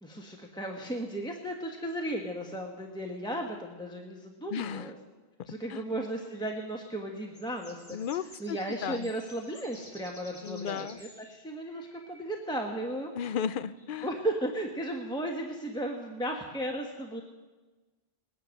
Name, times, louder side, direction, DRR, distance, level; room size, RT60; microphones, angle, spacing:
voice 1, 0.0-4.9 5.5-8.0 8.4-13.1 14.0-17.2, right 1 dB, 5° left, 1 dB, 1.2 m, -35 dB
voice 2, 4.5-4.9 5.4-5.8 7.9-9.1 10.4-11.0 13.1-14.1, left 8 dB, 60° left, 14 dB, 0.7 m, -35 dB
sound 1, 6.3-7.0 7.3-12.2 13.3-14.2, left 1 dB, 20° left, 2.4 m, -53 dB
19.5 x 10.0 x 6.4 m, 1.2 s
omnidirectional pair, 1.1 m